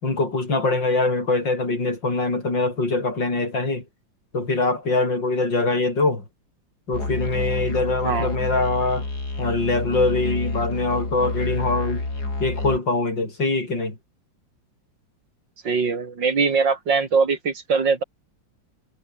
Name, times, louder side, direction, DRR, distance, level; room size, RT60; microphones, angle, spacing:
voice 1, 0.0-3.8 4.3-6.2 6.9-9.1 9.4-12.0 12.4-14.0, left 2 dB, 70° left, 6.8 m, -23 dB
Musical instrument, 6.9-12.8, left 2 dB, 55° left, 5.9 m, -28 dB
voice 2, 15.6-18.0, right 5 dB, 70° right, 3.7 m, -22 dB
omnidirectional pair, 2.1 m